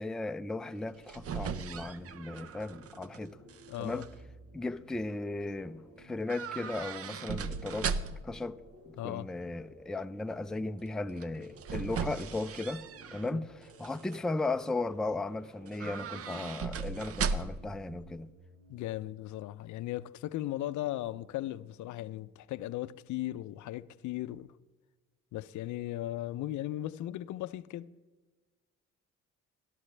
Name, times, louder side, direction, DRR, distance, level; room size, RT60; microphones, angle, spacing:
voice 1, 0.0-3.4 3.8-4.1 4.5-7.9 8.2-8.6 8.9-12.8 13.1-18.3, left 2 dB, ahead, 0.3 m, -36 dB
sound 1, 0.8-3.2 3.5-4.1 6.3-8.4 11.2-13.3 13.7-14.2 15.7-17.7 18.0-18.1, right 5 dB, 50° right, 0.6 m, -37 dB
sound 2, 2.0-19.1, right 1 dB, 80° right, 4.4 m, -56 dB
voice 2, 3.7-4.0 9.0-9.3 13.3-13.4 18.7-24.5 25.3-27.9, left 14 dB, 75° left, 0.5 m, -37 dB
18.0 x 11.5 x 3.3 m
cardioid pair, 90°, 30 cm